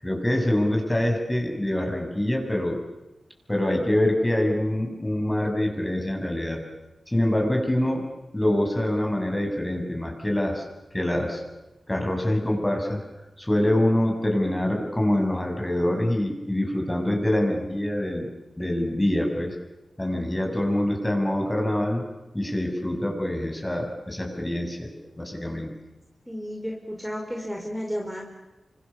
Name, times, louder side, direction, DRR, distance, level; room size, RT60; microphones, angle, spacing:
voice 1, 0.0-2.8 3.5-6.6 7.1-8.1 8.3-10.6 10.9-11.4 11.9-13.0 13.4-18.3 18.6-19.6 20.0-22.0 22.3-25.7, left 1 dB, 15° left, 2 dB, 7.2 m, -25 dB
voice 2, 26.3-28.2, equal, 5° right, 0 dB, 5.0 m, -32 dB
29.0 x 26.0 x 7.1 m, 1.0 s
wide cardioid pair, 70°, 0 cm